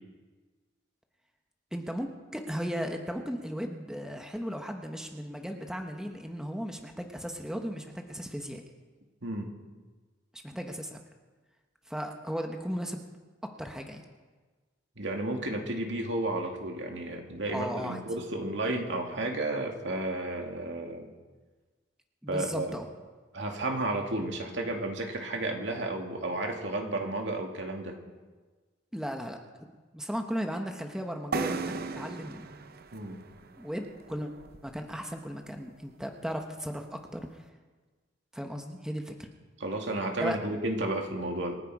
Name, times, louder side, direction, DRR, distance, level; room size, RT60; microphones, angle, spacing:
voice 1, 1.7-8.6 10.4-11.0 11.9-13.0 13.6-14.0 17.5-18.0 22.2-22.8 28.9-29.4 29.9-32.4 33.6-34.3 34.6-37.3 38.3-39.3 40.2-40.4, equal, 5° right, 3 dB, 1.2 m, -36 dB
voice 2, 15.0-21.1 22.3-22.7 23.3-28.0 32.9-33.2 39.6-41.6, right 2 dB, 70° right, 2 dB, 2.4 m, -32 dB
sound 1, 31.3-35.0, right 4 dB, 55° right, 0.7 m, -37 dB
27.0 x 10.5 x 4.9 m, 1.3 s
head